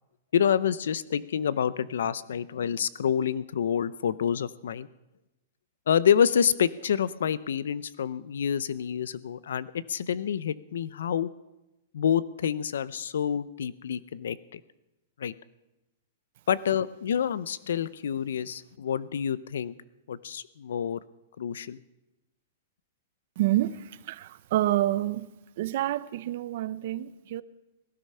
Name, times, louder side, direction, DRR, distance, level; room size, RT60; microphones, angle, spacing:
voice 1, 0.3-4.9 5.9-11.3 11.9-14.6 15.2-15.3 16.5-19.7 20.1-21.0 21.4-21.8, left 8 dB, 80° left, 0.6 m, -27 dB
voice 2, 23.4-25.3 25.6-27.4, right 14 dB, 40° right, 0.5 m, -28 dB
18.0 x 12.5 x 5.6 m
supercardioid pair, 180°, 0 cm